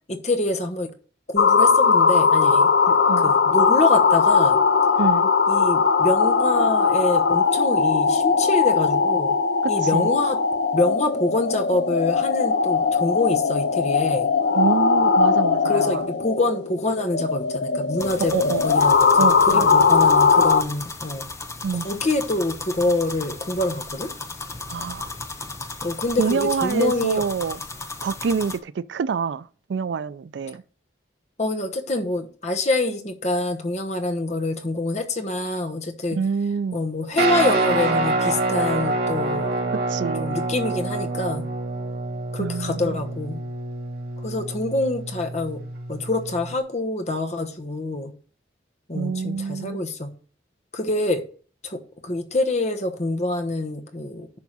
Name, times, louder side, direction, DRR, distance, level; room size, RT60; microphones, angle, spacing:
voice 1, 0.1-0.9 1.3-4.6 5.5-9.4 9.7-10.4 10.7-14.3 15.6-18.3 18.6-21.3 21.7-24.1 25.8-27.2 31.4-36.2 36.7-39.5 40.2-41.5 42.3-43.4 44.2-45.6 45.9-48.1 48.9-50.1 50.7-51.2 51.6-54.4, left 2 dB, 40° left, 1.1 m, -26 dB
sound 1, 1.4-20.6, left 5 dB, 70° left, 0.5 m, -19 dB
voice 2, 5.0-5.3 9.6-10.1 14.5-16.0 18.2-18.6 19.2-19.8 21.6-21.9 24.7-25.1 26.2-27.6 28.0-30.6 36.2-36.8 39.9-40.4 42.4-43.0 48.9-49.8, right 5 dB, 75° right, 0.4 m, -26 dB
sound 2, 18.0-28.6, left 3 dB, 15° left, 0.7 m, -35 dB
Guitar, 37.2-46.6, right 2 dB, 60° right, 1.9 m, -26 dB
11.0 x 3.6 x 6.1 m
head